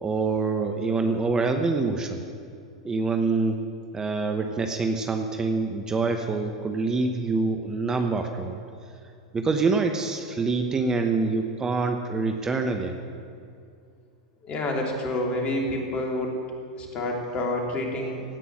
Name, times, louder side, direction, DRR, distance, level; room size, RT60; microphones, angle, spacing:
voice 1, 0.0-2.2 2.8-3.6 3.9-8.6 9.3-13.0, right 3 dB, 20° right, 5 dB, 1.0 m, -26 dB
voice 2, 14.5-16.3 16.8-18.2, left 1 dB, 35° left, 0 dB, 3.2 m, -28 dB
17.0 x 6.1 x 9.7 m, 2.4 s
hypercardioid pair, 100°, 3 cm